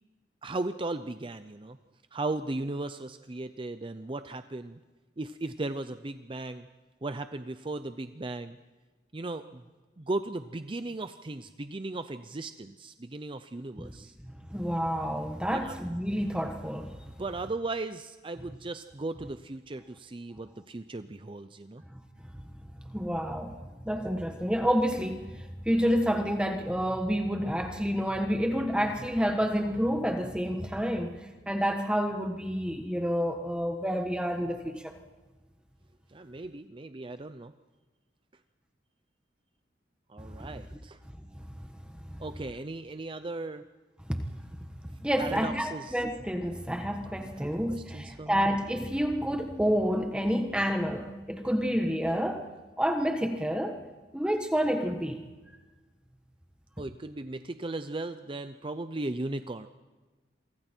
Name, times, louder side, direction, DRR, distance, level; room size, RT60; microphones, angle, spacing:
voice 1, 0.4-1.8 2.1-4.8 5.2-6.7 7.0-8.6 9.1-9.6 10.0-14.1 15.5-15.8 17.2-21.8 36.1-37.5 40.1-41.0 42.2-43.6 45.2-46.0 47.2-48.6 56.8-59.7, right 2 dB, 30° right, 10 dB, 0.6 m, -37 dB
voice 2, 14.5-17.0 22.9-23.6 23.8-31.1 31.5-34.9 40.4-40.5 42.1-42.2 44.1-44.2 45.0-52.5 52.8-53.8 54.1-55.3, equal, 5° right, 5 dB, 1.3 m, -29 dB
28.0 x 24.5 x 4.5 m, 1.3 s
head